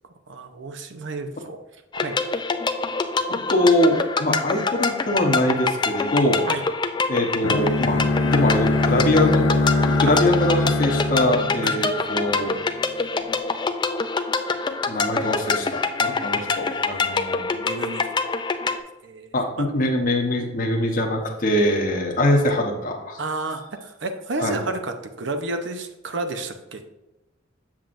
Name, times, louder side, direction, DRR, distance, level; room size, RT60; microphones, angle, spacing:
voice 1, 0.3-1.6 2.0-2.2 6.5-6.7 10.0-10.3 11.6-11.8 16.4-18.1 19.0-19.7 23.2-26.8, right 2 dB, 65° right, 7 dB, 0.7 m, -31 dB
sound 1, 1.9-18.8, left 4 dB, 25° left, 0.4 m, -25 dB
voice 2, 3.5-6.5 7.1-9.5 9.8-12.6 14.9-17.6 19.3-23.2 24.4-24.6, left 1 dB, 45° left, 0 dB, 0.9 m, -22 dB
Bowed string instrument, 7.4-12.4, left 2 dB, 70° left, 0.6 m, -23 dB
7.3 x 7.3 x 2.6 m, 1.0 s
head